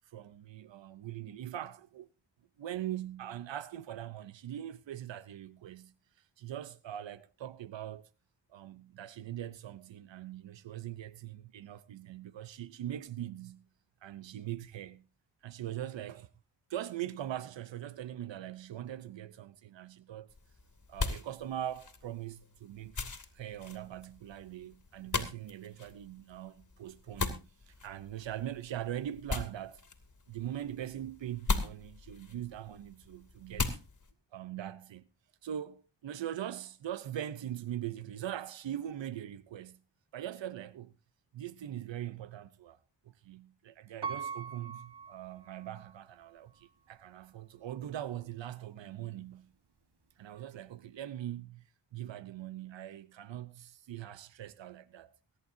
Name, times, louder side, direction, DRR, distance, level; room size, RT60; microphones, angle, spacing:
voice 1, 0.0-2.1 2.6-5.9 6.4-8.1 8.5-13.7 14.0-15.0 15.4-16.3 16.7-20.3 20.9-23.0 23.3-29.8 30.3-33.8 34.3-35.0 35.4-39.8 40.1-41.0 41.3-42.8 43.0-49.5 50.2-51.6 51.9-55.1, right 11 dB, 90° right, 0.7 m, -41 dB
sound 1, 20.3-34.1, left 3 dB, 45° left, 2.4 m, -40 dB
Piano, 44.0-46.0 46.6-46.7, right 6 dB, 65° right, 1.6 m, -41 dB
23.0 x 11.0 x 2.6 m
cardioid pair, 65°, 43 cm